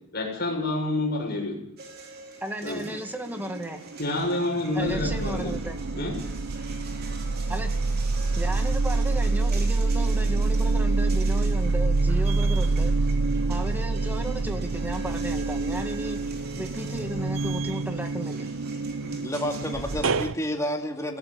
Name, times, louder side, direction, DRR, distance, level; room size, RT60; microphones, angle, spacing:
voice 1, 0.1-1.6 2.6-2.8 4.0-5.5 5.9-6.1 19.0-19.2, left 2 dB, 50° left, -1 dB, 6.8 m, -28 dB
sound 1, 1.8-20.3, right 3 dB, 50° right, 3.6 m, -45 dB
voice 2, 2.4-3.8 4.7-5.8 7.5-7.8 8.4-12.9 13.5-18.5, right 1 dB, 10° right, 6 dB, 2.0 m, -34 dB
sound 2, 3.3-4.1 4.4-20.3, right 3 dB, 70° right, 0.7 m, -26 dB
voice 3, 19.2-21.2, left 1 dB, 15° left, 2 dB, 2.6 m, -30 dB
18.0 x 15.5 x 9.6 m, 0.81 s
head